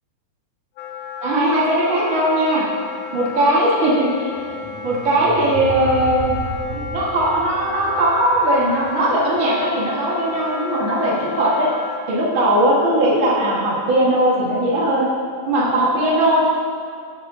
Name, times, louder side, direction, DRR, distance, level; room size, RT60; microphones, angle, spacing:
Wind instrument woodwind instrument, 0.8-12.0, left 6 dB, 80° left, 2.9 m, -33 dB
voice 1, 1.2-2.7 3.1-4.3 4.8-6.4 6.7-11.7 12.1-15.1 15.4-16.5, right 1 dB, 80° right, -5 dB, 1.1 m, -19 dB
sound 1, 4.3-9.4, equal, 60° right, 1.8 m, -33 dB
17.0 x 7.9 x 2.6 m, 2.3 s
omnidirectional pair, 4.7 m